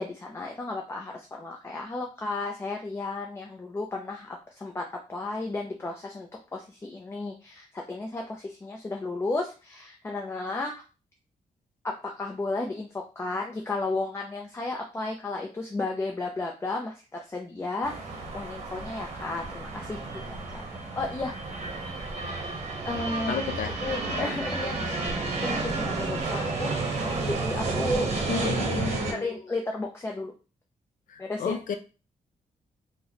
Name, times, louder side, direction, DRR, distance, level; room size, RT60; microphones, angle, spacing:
voice 1, 0.0-10.8 11.8-20.0 20.3-20.6 21.0-21.5 22.8-23.4 23.8-26.7 27.2-28.1 28.4-28.5 29.1-30.3 31.2-31.6, left 2 dB, 20° left, 1 dB, 0.4 m, -33 dB
sound 1, 17.8-29.1, right 3 dB, 50° right, 0.8 m, -31 dB
voice 2, 23.3-23.8 28.3-29.5 31.1-31.8, left 6 dB, 70° left, 8 dB, 0.5 m, -32 dB
3.0 x 2.1 x 3.9 m, 0.33 s
wide cardioid pair, 150°, 15 cm